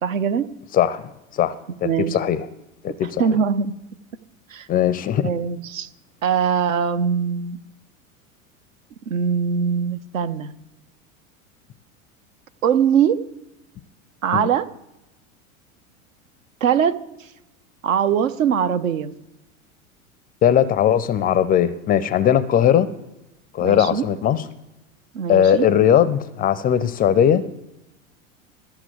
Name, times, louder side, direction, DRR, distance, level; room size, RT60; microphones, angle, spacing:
voice 1, 0.0-0.5 1.8-2.2 3.0-3.7 4.5-4.7 5.2-5.9 6.2-7.6 9.1-10.5 12.6-13.2 14.2-14.7 16.6-17.0 17.8-19.1 23.6-24.0 25.1-25.7, right 7 dB, 65° right, 12 dB, 0.8 m, -21 dB
voice 2, 0.7-1.5 1.8-2.4 2.8-3.2 4.7-5.3 14.3-14.5 20.4-22.9 23.5-24.4 25.3-27.4, left 9 dB, 20° left, 16 dB, 0.5 m, -19 dB
13.5 x 5.8 x 7.8 m, 0.94 s
figure-of-eight pair, 85°, 42 cm